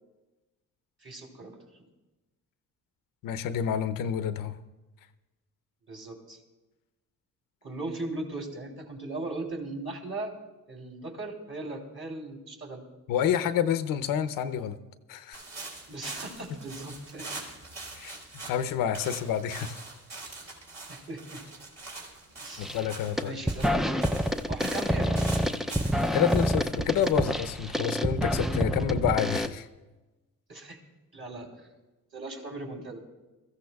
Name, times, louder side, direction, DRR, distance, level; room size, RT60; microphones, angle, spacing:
voice 1, 1.0-1.6 5.9-6.4 7.6-10.3 10.7-12.8 15.9-17.4 20.9-21.4 22.4-22.7 23.2-23.8 24.5-25.4 30.5-30.8 31.1-31.7 32.1-33.0, right 2 dB, 40° right, 1 dB, 3.4 m, -38 dB
voice 2, 3.2-4.6 13.1-14.8 15.1-15.4 17.9-18.2 18.5-19.8 22.6-23.3 26.1-29.7, left 9 dB, 85° left, 11 dB, 0.8 m, -28 dB
sound 1, 15.3-28.1, right 3 dB, 55° right, 4.1 m, -43 dB
sound 2, 22.6-22.9 23.2-29.5, equal, ahead, 0.4 m, -27 dB
22.5 x 14.5 x 2.3 m, 1.1 s
cardioid pair, 105°, 33 cm